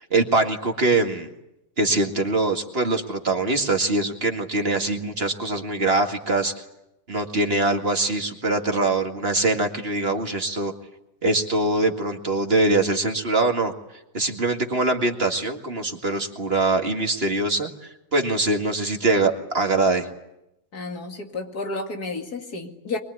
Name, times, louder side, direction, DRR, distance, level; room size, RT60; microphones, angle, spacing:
voice 1, 0.1-1.3 1.8-6.5 7.1-10.7 11.2-13.7 14.1-17.7 18.1-20.1, right 2 dB, 40° right, 4 dB, 2.2 m, -23 dB
voice 2, 20.7-23.0, left 3 dB, 80° left, 4 dB, 2.9 m, -31 dB
24.5 x 22.0 x 9.6 m, 0.87 s
omnidirectional pair, 1.6 m